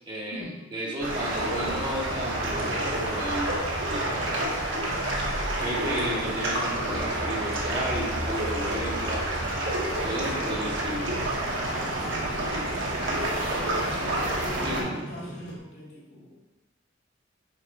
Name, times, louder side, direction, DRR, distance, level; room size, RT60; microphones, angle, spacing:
voice 1, 0.1-3.5 3.9-4.3 5.6-9.3 10.0-11.1 14.6-15.0, right 1 dB, 25° right, -4 dB, 1.2 m, -33 dB
sound 1, 1.0-14.8, right 1 dB, 70° right, 1.4 m, -29 dB
voice 2, 4.4-5.0 10.1-10.5 14.4-16.4, left 1 dB, 60° left, -4 dB, 2.0 m, -41 dB
Motorcycle, 8.6-15.6, right 1 dB, 90° left, 1.1 m, -42 dB
5.5 x 4.4 x 4.1 m, 1.1 s
head